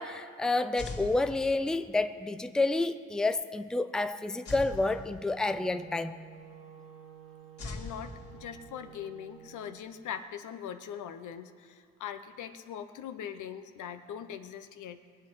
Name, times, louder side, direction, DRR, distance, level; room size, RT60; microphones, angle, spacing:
voice 1, 0.0-6.2, left 2 dB, ahead, 10 dB, 0.5 m, -29 dB
sound 1, 0.8-2.0 4.4-5.7 7.6-8.9, left 3 dB, 50° left, 2.5 m, -42 dB
Wind instrument woodwind instrument, 5.4-9.9, right 8 dB, 50° right, 1.6 m, -51 dB
voice 2, 7.6-15.0, left 9 dB, 80° left, 9 dB, 0.9 m, -41 dB
21.5 x 7.6 x 6.3 m, 2.3 s
cardioid pair, 90°, 30 cm